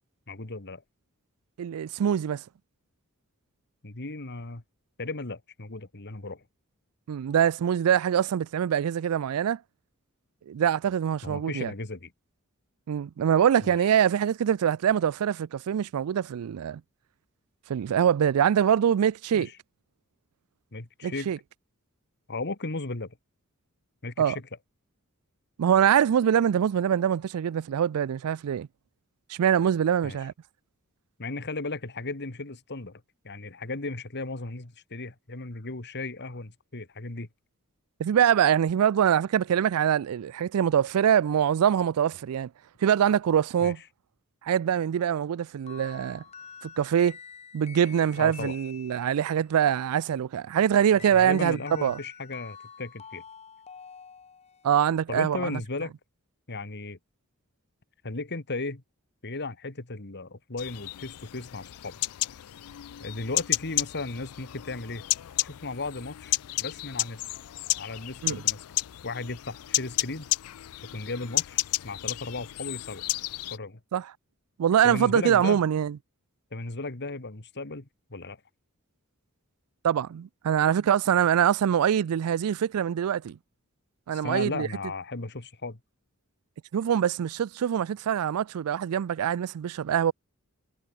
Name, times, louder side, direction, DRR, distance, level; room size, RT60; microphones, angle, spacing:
voice 1, 0.3-0.8 3.8-4.6 5.0-6.4 11.2-12.1 13.6-13.9 19.3-19.5 20.7-21.3 22.3-23.2 24.0-24.5 30.0-30.2 31.2-37.3 43.6-43.7 48.2-48.5 50.9-53.2 55.1-55.9 56.5-57.0 58.0-58.8 59.2-61.9 63.0-65.0 65.4-67.2 67.8-68.6 69.0-70.3 70.8-73.0 73.5-73.8 74.8-75.6 76.5-78.4 84.1-85.8, left 3 dB, 50° left, 2.0 m, -36 dB
voice 2, 1.6-2.4 7.1-9.6 10.5-11.7 12.9-16.8 17.7-19.5 21.0-21.4 24.2-24.4 25.6-28.7 29.3-30.3 38.0-42.5 42.8-43.8 44.4-46.2 46.6-47.2 47.5-52.0 54.6-55.6 68.2-68.4 73.9-74.1 74.6-76.0 79.8-83.4 84.1-84.7 86.7-90.1, right 9 dB, 70° right, 0.3 m, -24 dB
sound 1, 45.7-49.4 51.0-54.8, left 6 dB, 30° left, 0.7 m, -47 dB
sound 2, 60.6-73.6, left 18 dB, 75° left, 0.4 m, -32 dB
head